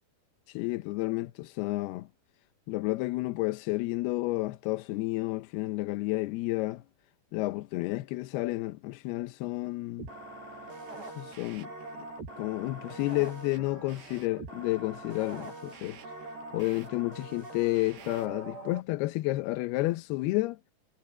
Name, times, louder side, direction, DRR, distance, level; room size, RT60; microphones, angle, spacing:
voice 1, 0.5-2.1 2.7-6.8 7.3-10.1 11.2-11.7 12.0-12.1 12.4-16.0 16.5-20.6, left 20 dB, 75° left, 2.5 m, -31 dB
sound 1, 10.0-18.8, right 2 dB, 70° right, 8.9 m, -44 dB
omnidirectional pair, 5.1 m